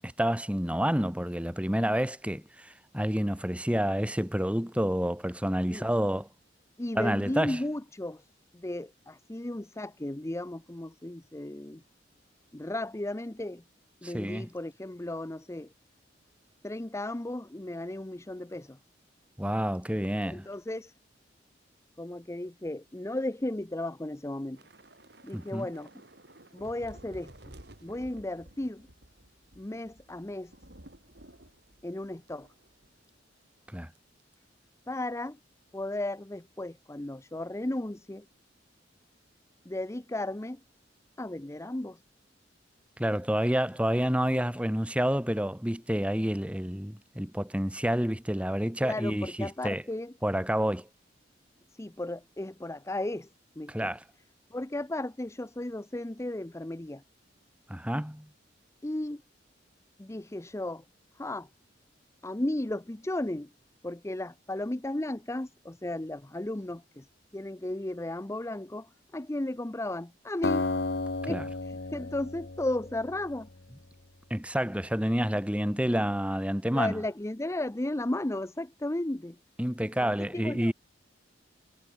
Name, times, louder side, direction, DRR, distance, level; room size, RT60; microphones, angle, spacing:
voice 1, 0.0-6.3 7.0-7.6 14.0-14.5 19.4-20.5 25.3-25.7 33.7-33.9 43.0-49.8 50.2-50.9 53.7-54.0 57.7-58.3 71.2-71.4 74.3-76.9 79.6-80.7, equal, 5° right, 1.8 m, -29 dB
voice 2, 6.8-8.2 8.5-11.8 12.5-13.6 14.0-15.7 16.6-18.8 20.3-20.9 22.0-24.6 25.2-25.9 26.5-27.3 27.8-28.9 29.6-30.5 31.8-32.5 34.9-35.4 35.7-38.3 39.7-40.6 41.2-42.0 48.8-50.1 51.7-53.3 53.6-53.9 54.5-57.0 58.8-59.2 60.0-60.8 61.1-61.5 62.2-63.5 63.8-67.1 67.3-70.6 71.3-73.5 76.7-79.4 80.0-80.7, left 1 dB, 15° left, 0.7 m, -35 dB
Thunder / Rain, 24.5-33.1 33.4-33.6 33.9-34.2, right 1 dB, 60° right, 6.7 m, -54 dB
Acoustic guitar, 70.4-73.6, left 3 dB, 60° left, 1.2 m, -33 dB
head